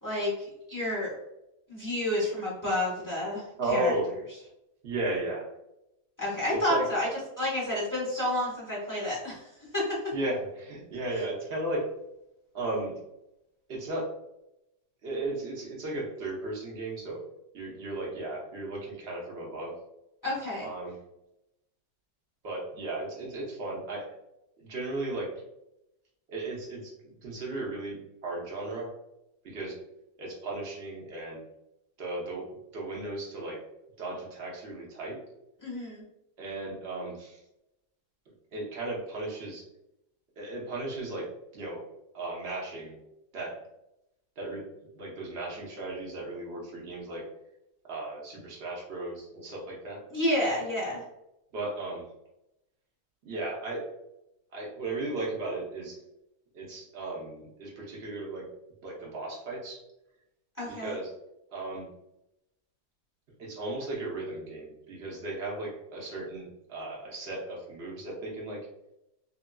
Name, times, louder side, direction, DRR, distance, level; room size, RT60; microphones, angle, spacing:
voice 1, 0.0-1.1 1.7-3.9 6.2-7.1 7.4-10.0 20.2-20.7 35.6-36.0 50.1-51.0 60.6-61.0, left 1 dB, 15° left, -7 dB, 0.8 m, -30 dB
voice 2, 3.6-4.1 4.8-5.5 6.5-6.8 10.1-11.8 12.5-12.9 13.7-14.1 15.0-17.2 17.5-19.7 20.6-21.0 22.4-24.0 24.6-25.3 26.3-28.9 29.4-29.8 30.2-31.4 32.0-32.4 32.7-33.6 34.0-35.2 36.4-37.4 38.5-39.6 40.4-41.3 41.5-41.8 42.1-43.0 43.3-43.6 44.4-44.6 44.9-47.2 47.9-50.0 51.5-52.0 53.2-53.8 54.5-56.0 56.5-58.5 58.8-59.8 60.6-61.1 61.5-61.9 63.4-68.6, right 2 dB, 50° right, -3 dB, 0.8 m, -35 dB
2.9 x 2.7 x 2.2 m, 0.86 s
omnidirectional pair, 1.9 m